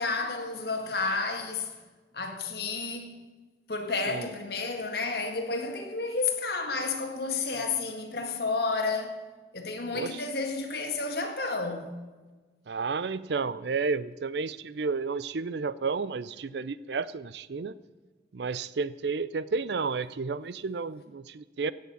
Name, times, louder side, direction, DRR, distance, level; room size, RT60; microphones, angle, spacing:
voice 1, 0.0-1.7 2.1-3.2 3.7-9.2 9.5-11.9, left 3 dB, 60° left, 1.9 m, -31 dB
voice 2, 12.7-17.8 18.3-21.7, right 4 dB, 70° right, 0.5 m, -31 dB
16.5 x 6.7 x 8.4 m
head